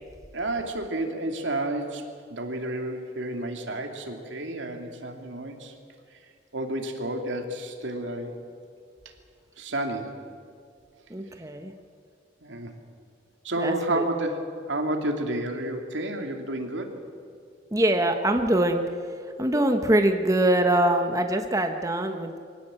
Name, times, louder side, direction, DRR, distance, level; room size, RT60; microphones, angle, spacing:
voice 1, 0.3-5.7 6.5-8.3 9.6-10.2 12.4-12.7 13.4-14.4 14.7-17.0, right 1 dB, 80° right, 4 dB, 2.6 m, -30 dB
voice 2, 11.1-11.7 13.6-14.0 17.7-18.8 19.1-22.4, right 1 dB, 20° right, 5 dB, 1.0 m, -23 dB
24.0 x 17.5 x 7.6 m, 2.3 s
head